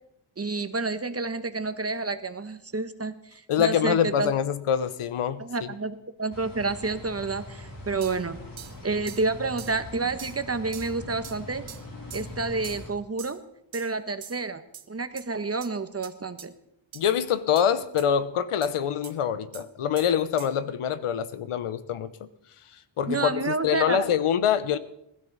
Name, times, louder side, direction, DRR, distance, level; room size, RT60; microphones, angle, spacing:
voice 1, 0.4-4.3 5.4-8.4 8.8-11.6 12.1-13.4 13.7-14.6 14.9-16.5 23.1-24.0, right 3 dB, 30° right, 10 dB, 1.2 m, -29 dB
voice 2, 3.5-5.7 16.9-22.1 23.0-24.8, left 8 dB, 85° left, 14 dB, 1.0 m, -25 dB
sound 1, 6.3-12.9, left 1 dB, 40° left, 3.8 m, -42 dB
sound 2, 8.0-8.2 8.6-8.8 9.1-9.3 9.6-9.8 10.2-10.4 10.7-10.9 11.2-11.4 11.7-11.8 12.1-12.3 12.6-12.8 13.2-13.4 13.7-13.9 14.2-14.4 14.7-14.9 15.2-15.3 15.6-15.7 16.0-16.1 16.4-16.5 16.9-17.0 17.6-17.7 18.0-18.1 18.6-18.7 19.0-19.1 19.5-19.7 20.0-20.1 20.4-20.5, right 9 dB, 65° right, 1.2 m, -43 dB
21.0 x 12.5 x 4.1 m, 0.78 s
cardioid pair, 90°, 50 cm